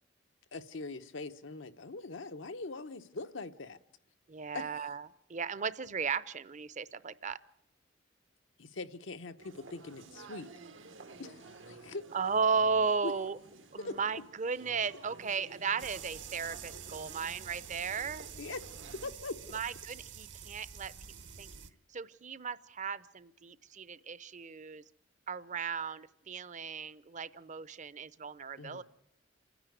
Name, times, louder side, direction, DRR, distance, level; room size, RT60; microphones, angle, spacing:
voice 1, 0.5-3.8 4.5-4.7 8.6-10.5 11.2-12.0 13.0-13.1 13.8-14.0 18.4-18.7 18.9-19.6 28.6-28.8, left 3 dB, 85° left, 9 dB, 0.9 m, -42 dB
voice 2, 4.3-7.4 12.1-13.4 13.7-18.3 19.5-20.9 21.4-21.5 21.9-24.8 25.3-28.8, right 5 dB, 40° right, 17 dB, 0.6 m, -35 dB
sound 1, 9.4-19.1, right 3 dB, 85° right, 1.4 m, -53 dB
sound 2, 15.8-21.7, right 7 dB, 65° right, 1.1 m, -47 dB
28.0 x 10.0 x 9.2 m, 0.81 s
head